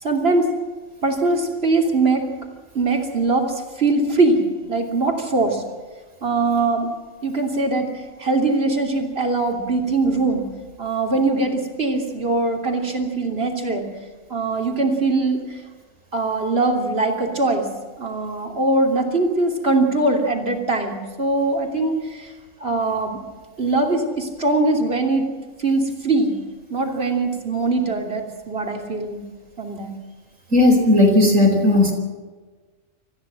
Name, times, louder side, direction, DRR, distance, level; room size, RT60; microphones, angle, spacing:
voice 1, 0.0-0.5 1.0-2.3 2.7-5.6 6.2-6.9 7.2-10.5 10.8-13.9 14.3-15.6 16.1-17.7 18.0-22.3 22.6-23.2 23.6-25.3 25.6-26.3 26.7-29.2 29.6-29.9, right 3 dB, 50° right, 1 dB, 3.3 m, -21 dB
voice 2, 30.5-31.9, left 2 dB, 90° right, 2 dB, 4.8 m, -15 dB
25.5 x 14.5 x 7.6 m, 1.4 s
omnidirectional pair, 1.3 m